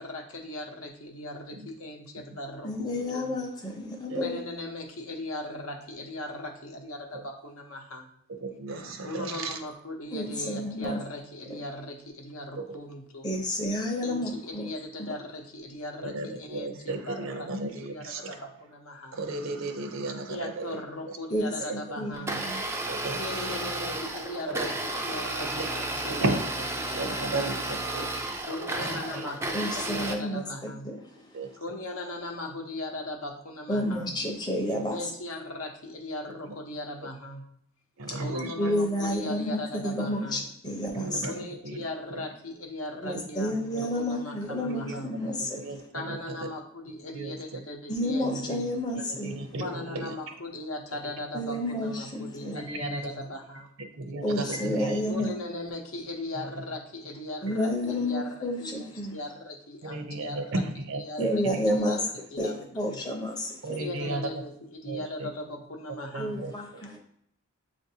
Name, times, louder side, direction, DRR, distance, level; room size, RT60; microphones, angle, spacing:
voice 1, 0.0-3.4 4.1-8.1 9.0-13.3 14.0-19.2 20.3-22.4 23.2-26.4 26.8-27.6 28.4-30.9 31.6-34.2 34.9-37.5 38.2-40.5 41.2-45.1 45.9-48.7 49.6-53.8 55.1-60.6 60.9-61.4 61.7-62.0 62.3-63.0 63.8-66.4, left 1 dB, 70° left, 3 dB, 0.8 m, -38 dB
voice 2, 2.6-4.4 10.1-11.0 11.5-11.6 13.2-14.7 15.0-15.1 21.3-23.0 29.5-31.6 33.7-35.0 38.0-38.2 38.6-41.4 43.0-45.9 47.9-49.6 51.3-52.6 54.2-55.3 57.4-59.2 61.2-62.0 62.4-63.8 66.2-67.0, left 1 dB, 20° left, 2 dB, 0.6 m, -31 dB
voice 3, 8.4-9.3 16.0-18.3 19.1-20.5 22.9-23.2 24.5-24.6 25.5-25.7 26.1-26.4 26.9-27.6 27.9-28.4 29.1-29.2 31.3-31.5 34.7-34.8 38.0-38.5 40.9-41.3 41.6-41.8 43.1-43.2 44.9-45.0 45.6-45.8 47.1-47.3 48.5-48.6 49.1-49.6 49.9-50.1 52.5-52.9 54.0-55.0 59.9-61.3 63.6-64.2 64.9-65.0 66.1-66.5, right 2 dB, 60° right, 7 dB, 0.5 m, -33 dB
Domestic sounds home sounds, 22.1-30.1, right 2 dB, 10° right, 0.3 m, -33 dB
7.4 x 2.5 x 2.7 m, 0.70 s
head